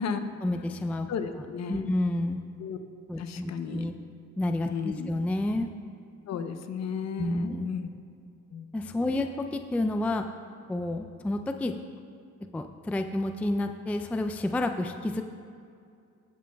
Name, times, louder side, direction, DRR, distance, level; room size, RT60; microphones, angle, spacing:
voice 1, 0.4-1.1 1.7-2.4 3.1-3.9 4.4-5.7 7.2-7.7 8.7-10.2 10.7-11.7 12.5-15.2, left 1 dB, 5° left, 6 dB, 0.3 m, -29 dB
voice 2, 1.1-1.9 2.6-2.8 3.2-3.9 4.7-5.1 6.3-7.9 8.5-8.7, left 6 dB, 60° left, 9 dB, 0.7 m, -34 dB
17.0 x 8.4 x 2.3 m, 2.4 s
cardioid pair, 90°, 30 cm